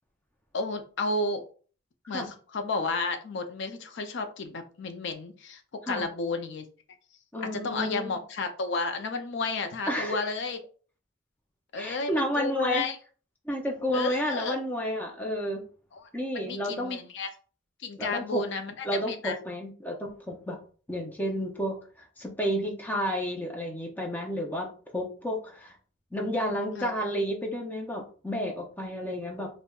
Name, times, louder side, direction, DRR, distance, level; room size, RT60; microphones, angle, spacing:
voice 1, 0.5-1.4 2.1-2.2 2.5-5.6 5.9-6.6 7.4-10.6 11.7-13.0 13.9-14.6 15.9-16.1 16.3-17.3 17.8-19.4 26.8-26.9, left 3 dB, 60° left, 7 dB, 0.4 m, -32 dB
voice 2, 7.3-8.2 9.9-10.2 11.8-12.9 13.5-15.6 16.1-17.0 18.0-18.4 18.8-20.6 20.9-21.8 22.2-25.7 26.1-29.5, equal, 10° left, 1 dB, 0.5 m, -31 dB
4.2 x 2.1 x 2.2 m, 0.40 s
head